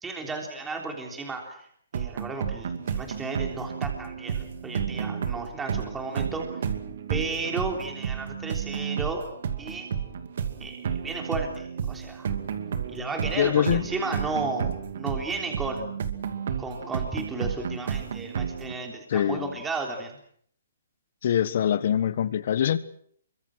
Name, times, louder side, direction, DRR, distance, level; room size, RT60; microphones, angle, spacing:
voice 1, 0.0-1.7 1.9-6.7 7.1-9.3 9.6-9.9 10.6-12.3 12.9-16.0 16.6-20.2, right 3 dB, 10° right, 3.5 m, -34 dB
sound 1, 1.9-18.7, right 7 dB, 60° right, 2.6 m, -32 dB
voice 2, 13.4-13.8 19.1-19.5 21.2-22.8, left 9 dB, 50° left, 1.5 m, -24 dB
25.0 x 24.0 x 6.2 m
hypercardioid pair, 160°, 0 cm